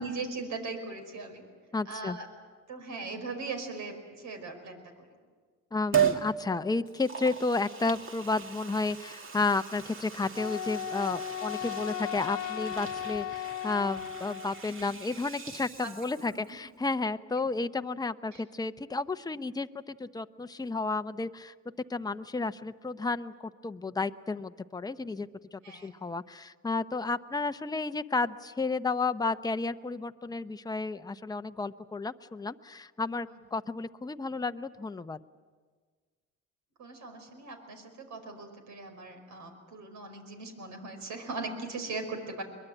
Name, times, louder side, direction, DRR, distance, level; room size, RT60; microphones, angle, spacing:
voice 1, 0.0-1.4 1.9-2.3 2.7-5.1 15.8-15.9 16.2-16.4 18.3-18.4 25.6-25.9 36.8-42.4, right 3 dB, 75° right, 5 dB, 5.3 m, -39 dB
voice 2, 1.7-2.2 5.7-21.5 21.9-35.2, left 3 dB, 15° left, 10 dB, 0.7 m, -32 dB
Liquid, 5.9-6.3 6.9-16.5 16.8-16.9, right 8 dB, 45° right, 2.2 m, -36 dB
Wind instrument woodwind instrument, 10.4-14.6, left 9 dB, 85° left, 0.9 m, -36 dB
23.0 x 21.5 x 9.0 m, 1.6 s
cardioid pair, 90°, 30 cm